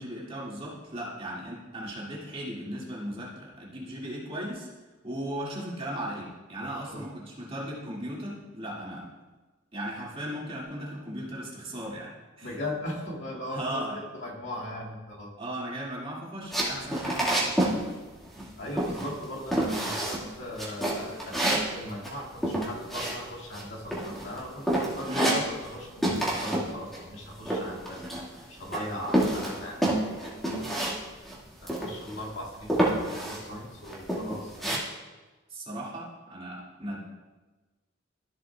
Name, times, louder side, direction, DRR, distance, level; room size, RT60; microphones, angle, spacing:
voice 1, 0.0-4.7 5.0-9.1 9.7-12.1 12.4-12.6 13.5-14.0 15.4-17.6 25.1-25.3 35.5-37.0, right 1 dB, 30° right, -5 dB, 2.0 m, -37 dB
voice 2, 6.6-7.0 12.4-13.8 14.1-15.3 18.6-28.0 28.5-30.4 31.6-34.8, left 1 dB, 70° left, -4 dB, 2.0 m, -38 dB
sound 1, 16.5-17.8 18.1-18.5 18.8-19.2 19.5-20.2 20.6-23.6 23.9-24.4 24.7-25.8 26.0-26.7 26.9-28.4 28.7-31.0 31.2-31.3 31.7-32.2 32.7-33.4 33.8-34.8, right 1 dB, ahead, 1.7 m, -28 dB
13.0 x 7.7 x 2.3 m, 1.2 s
head